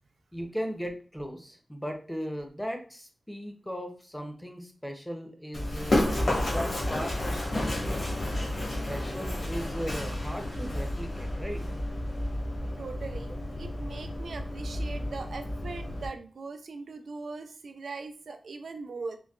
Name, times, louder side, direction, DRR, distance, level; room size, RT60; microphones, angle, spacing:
voice 1, 0.3-8.0 8.7-11.6, equal, 5° left, 3 dB, 0.5 m, -37 dB
Run, 5.5-16.1, left 1 dB, 55° left, 1.3 m, -31 dB
voice 2, 12.8-19.2, right 4 dB, 90° right, 7 dB, 0.3 m, -40 dB
3.8 x 2.1 x 2.3 m, 0.39 s
wide cardioid pair, 95°, 0 cm